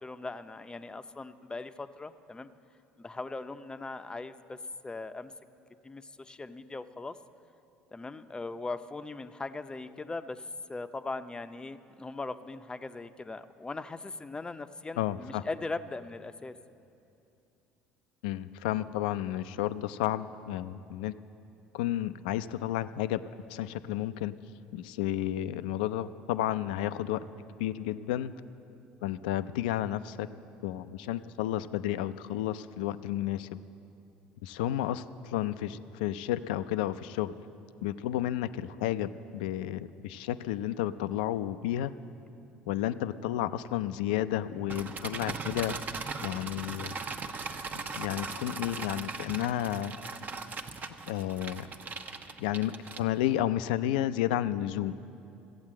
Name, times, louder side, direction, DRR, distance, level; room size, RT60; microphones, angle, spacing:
voice 1, 0.0-2.5 3.0-5.3 5.8-7.2 7.9-16.5, left 3 dB, 20° left, 10 dB, 0.6 m, -39 dB
voice 2, 15.0-15.4 18.2-21.1 21.7-23.2 23.5-24.3 24.7-27.2 27.6-28.3 29.0-30.3 30.6-33.5 34.4-37.3 37.8-41.9 42.7-45.8 46.2-47.0 48.0-49.9 51.1-51.7 52.4-54.9, left 12 dB, 80° left, 13 dB, 0.4 m, -31 dB
sound 1, 44.7-53.4, right 4 dB, 40° right, 0.8 m, -39 dB
14.0 x 8.7 x 7.5 m, 2.7 s
hypercardioid pair, 70°, 5 cm